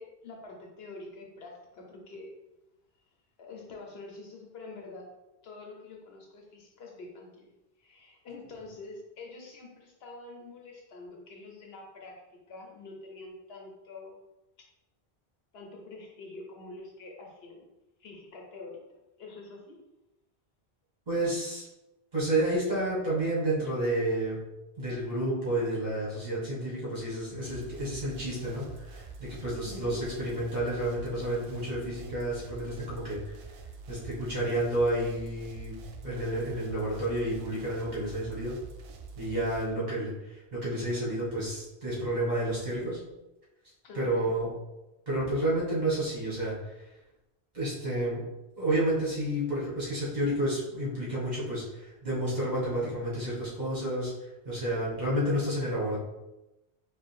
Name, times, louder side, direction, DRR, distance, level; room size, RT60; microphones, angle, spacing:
voice 1, 0.0-2.4 3.4-5.1 5.4-7.5 7.8-14.2 14.6-14.7 15.5-17.6 18.0-18.8 19.2-19.8 29.6-30.0 39.3-39.8 43.8-44.3, left 3 dB, 75° left, 0 dB, 1.0 m, -46 dB
voice 2, 21.1-21.6 22.1-24.4 24.8-33.2 33.9-35.8 36.0-38.5 39.2-43.0 43.9-44.5 45.1-46.9 47.5-48.2 48.6-56.0, right 1 dB, 45° right, -7 dB, 1.6 m, -30 dB
sound 1, 27.4-39.7, right 4 dB, 65° right, 0.7 m, -46 dB
5.2 x 2.5 x 3.4 m, 0.98 s
omnidirectional pair, 1.1 m